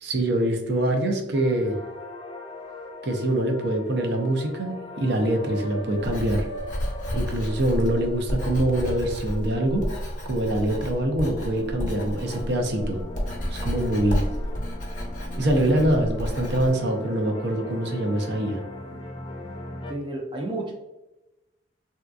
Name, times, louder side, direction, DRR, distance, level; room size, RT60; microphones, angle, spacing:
voice 1, 0.0-1.8 3.0-6.5 7.1-9.8 10.3-13.0 13.5-14.2 15.4-18.6, right 1 dB, 65° right, 2 dB, 0.6 m, -24 dB
sound 1, 1.3-19.9, left 1 dB, 25° left, 0.3 m, -40 dB
Writing, 5.9-16.7, equal, 40° left, 0.8 m, -31 dB
voice 2, 19.9-20.7, right 2 dB, 25° right, 0 dB, 0.6 m, -31 dB
3.4 x 2.7 x 2.4 m, 1.0 s
head